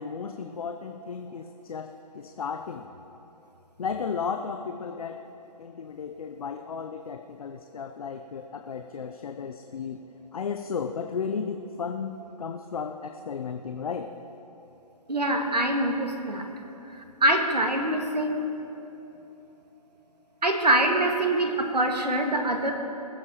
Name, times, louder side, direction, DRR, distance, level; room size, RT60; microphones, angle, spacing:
voice 1, 0.0-2.9 3.8-5.2 5.6-10.0 10.3-14.1, left 6 dB, 60° left, 6 dB, 0.7 m, -34 dB
voice 2, 15.1-16.5 16.9-18.4 20.4-22.7, right 1 dB, 85° right, 3 dB, 1.7 m, -24 dB
20.5 x 8.1 x 4.3 m, 3.0 s
figure-of-eight pair, 135°, 21 cm